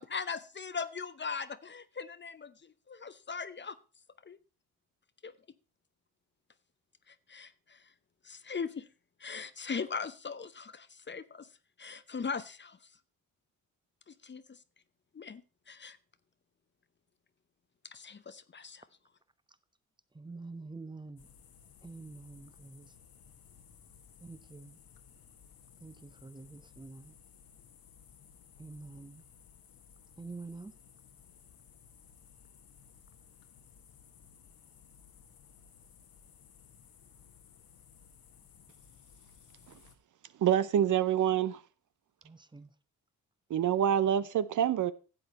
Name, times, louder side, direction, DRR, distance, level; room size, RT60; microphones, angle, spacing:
voice 1, 0.0-3.8 4.2-4.4 5.2-5.3 7.1-7.9 8.2-8.9 9.2-11.5 11.8-12.9 14.1-14.6 15.1-16.0 17.8-18.9, left 5 dB, 30° left, 0.7 m, -40 dB
voice 2, 20.1-21.3 21.8-22.9 24.2-24.8 25.8-27.2 28.6-29.2 30.2-30.7 42.2-42.7, right 3 dB, 10° right, 0.8 m, -47 dB
sound 1, 21.2-39.9, left 7 dB, 70° left, 1.6 m, -58 dB
voice 3, 40.4-41.6 43.5-44.9, right 9 dB, 55° right, 0.7 m, -26 dB
12.0 x 7.9 x 4.2 m
supercardioid pair, 55°, 37 cm